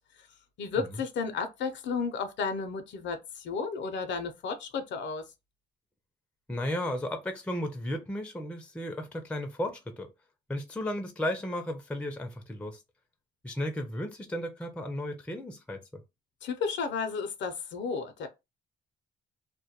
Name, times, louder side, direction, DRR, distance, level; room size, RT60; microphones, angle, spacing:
voice 1, 0.6-5.2 16.4-18.3, left 5 dB, 65° left, 0.5 m, -33 dB
voice 2, 6.5-10.1 10.5-12.8 13.4-16.0, left 1 dB, 5° left, 0.4 m, -34 dB
2.2 x 2.1 x 2.7 m
cardioid pair, 90°, 20 cm